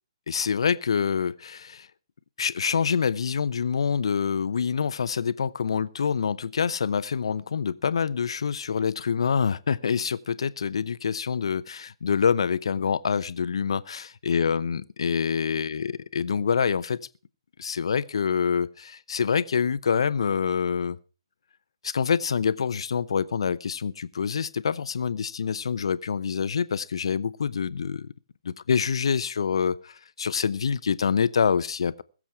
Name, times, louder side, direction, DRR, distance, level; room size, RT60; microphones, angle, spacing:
voice 1, 0.3-1.9 2.4-17.1 17.6-21.0 21.8-28.1 28.4-32.0, left 6 dB, 65° left, 0.7 m, -26 dB
21.0 x 7.4 x 4.7 m
figure-of-eight pair, 135°, 3 cm